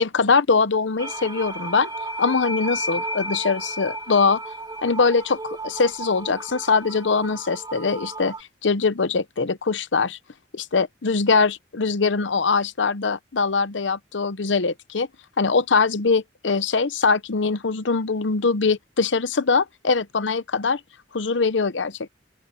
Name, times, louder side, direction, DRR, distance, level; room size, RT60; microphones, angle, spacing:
voice 1, 0.0-1.9 2.2-4.4 4.8-8.3 8.6-10.2 10.5-15.1 15.4-20.8 21.1-22.1, left 4 dB, 80° left, 0.8 m, -22 dB
sound 1, 1.0-8.4, right 1 dB, 25° right, 1.8 m, -33 dB
open air
head